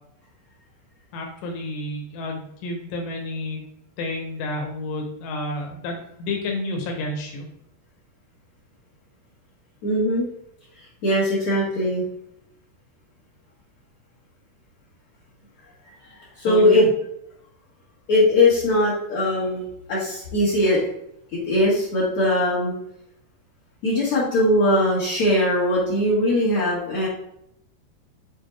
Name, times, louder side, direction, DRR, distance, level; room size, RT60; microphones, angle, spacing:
voice 1, 1.1-3.6 4.0-7.5 16.5-16.9, left 2 dB, 75° left, 2 dB, 3.1 m, -30 dB
voice 2, 9.8-10.3 11.0-12.0 16.0-16.9 18.1-19.6 19.9-20.8 21.3-22.7 23.8-27.1, left 1 dB, 55° left, -8 dB, 2.2 m, -20 dB
7.2 x 4.2 x 3.2 m, 0.76 s
omnidirectional pair, 5.2 m